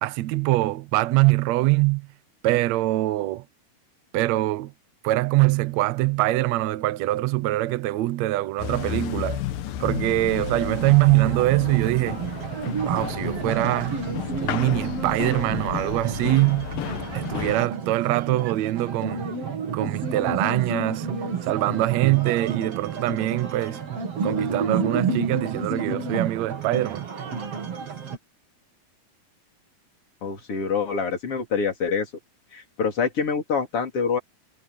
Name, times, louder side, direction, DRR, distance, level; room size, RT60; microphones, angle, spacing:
voice 1, 0.0-2.1 2.4-3.4 4.1-4.7 5.0-9.4 9.8-12.3 12.8-14.1 14.4-16.7 17.1-19.3 19.7-21.1 21.4-23.8 24.2-27.1, right 17 dB, 75° right, 1.7 m, -23 dB
sound 1, 8.6-17.7, left 11 dB, 80° left, 2.9 m, -32 dB
sound 2, 10.7-28.2, right 5 dB, 45° right, 3.3 m, -30 dB
voice 2, 30.2-32.1 32.5-34.2, left 5 dB, 40° left, 4.6 m, -26 dB
omnidirectional pair, 4.0 m